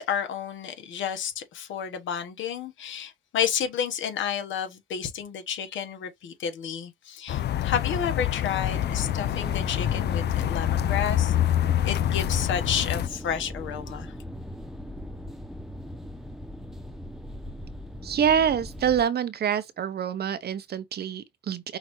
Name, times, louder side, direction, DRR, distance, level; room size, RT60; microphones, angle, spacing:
voice 1, 0.0-11.3 11.8-14.1, left 8 dB, 75° left, 1.4 m, -31 dB
sound 1, 7.3-13.1, left 12 dB, 55° left, 0.4 m, -26 dB
sound 2, 8.7-19.0, left 1 dB, ahead, 1.0 m, -38 dB
voice 2, 18.0-21.8, right 8 dB, 55° right, 0.8 m, -26 dB
5.8 x 2.8 x 3.1 m
cardioid pair, 90°, 20 cm